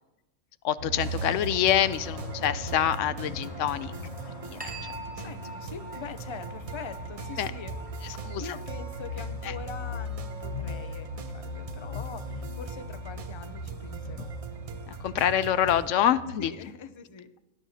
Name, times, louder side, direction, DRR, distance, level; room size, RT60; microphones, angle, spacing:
voice 1, 0.6-3.9 4.4-4.7 7.4-7.5 8.2-8.4 15.0-16.5, left 10 dB, 80° left, 14 dB, 0.9 m, -26 dB
sound 1, 0.8-16.5, left 1 dB, 60° left, 1.5 m, -39 dB
sound 2, 1.0-15.9, right 6 dB, 55° right, 0.4 m, -43 dB
sound 3, 4.6-13.6, right 1 dB, 5° right, 1.2 m, -47 dB
voice 2, 5.2-7.8 8.1-14.4 16.4-17.3, left 6 dB, 35° left, 11 dB, 0.5 m, -43 dB
18.5 x 11.0 x 2.8 m, 0.98 s
omnidirectional pair, 1.3 m